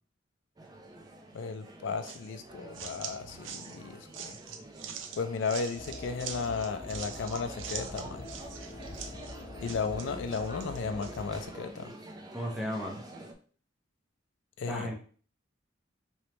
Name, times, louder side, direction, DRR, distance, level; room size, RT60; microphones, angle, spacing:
sound 1, 0.6-13.3, right 1 dB, 20° right, 0.4 m, -48 dB
voice 1, 1.3-4.4 5.2-8.3 9.6-11.9 14.6-14.9, left 5 dB, 75° left, 8 dB, 0.4 m, -34 dB
sound 2, 2.0-11.2, right 7 dB, 90° right, 0.4 m, -44 dB
sound 3, 5.7-11.4, left 2 dB, 45° left, 1.0 m, -44 dB
voice 2, 12.3-13.0 14.7-14.9, equal, 5° right, -2 dB, 0.8 m, -34 dB
3.1 x 3.1 x 3.0 m, 0.44 s
head